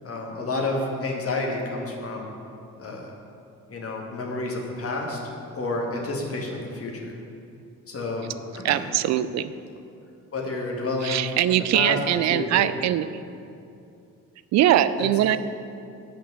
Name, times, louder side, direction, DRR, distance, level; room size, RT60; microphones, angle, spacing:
voice 1, 0.0-2.3 2.8-3.1 3.7-5.2 5.5-7.2 7.9-8.9 10.3-12.7 15.0-15.1, left 2 dB, 30° left, -1 dB, 1.9 m, -30 dB
voice 2, 8.6-9.5 11.0-13.1 14.5-15.4, right 12 dB, 40° right, 13 dB, 0.5 m, -21 dB
8.7 x 5.7 x 8.0 m, 2.6 s
figure-of-eight pair, 45°, 45 cm